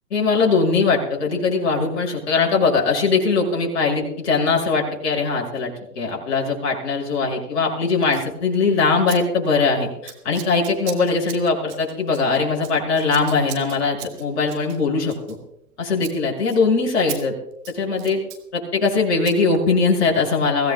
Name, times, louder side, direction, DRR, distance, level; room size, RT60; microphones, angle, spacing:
voice 1, 0.1-15.4 15.8-17.3 17.7-18.2 18.5-20.7, left 4 dB, 45° left, -1 dB, 6.1 m, -21 dB
Scissors, 8.0-8.3 9.1-9.2 9.4-9.7 10.0-15.7 16.0-16.2 16.5-16.6 17.1-17.2 17.5-18.4 19.2-19.4, right 13 dB, 25° right, 1.6 m, -38 dB
23.5 x 16.5 x 2.2 m, 0.83 s
hypercardioid pair, 130°, 49 cm